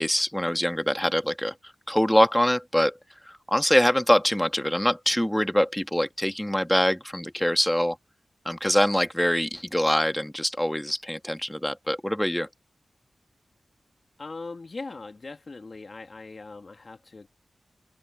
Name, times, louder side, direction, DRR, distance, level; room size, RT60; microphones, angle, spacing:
voice 1, 0.0-1.5 1.9-3.0 3.3-8.0 8.4-12.5, equal, 5° left, 1.8 m, -24 dB
voice 2, 14.2-17.3, left 3 dB, 50° left, 1.8 m, -40 dB
open air
cardioid pair, 55°, 0 cm